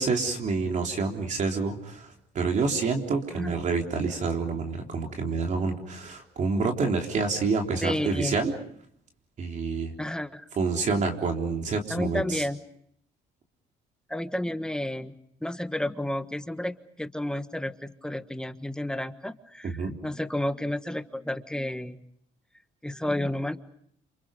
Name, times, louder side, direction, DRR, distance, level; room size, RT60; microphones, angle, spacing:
voice 1, 0.0-8.5 9.4-9.9 10.6-12.4 19.6-20.0, right 4 dB, 45° right, 2 dB, 3.7 m, -28 dB
voice 2, 7.8-8.4 10.0-10.4 11.9-12.6 14.1-15.1 15.4-22.0 22.8-23.6, left 1 dB, 5° left, 10 dB, 1.3 m, -31 dB
29.5 x 27.5 x 5.3 m, 0.68 s
cardioid pair, 110°, 17 cm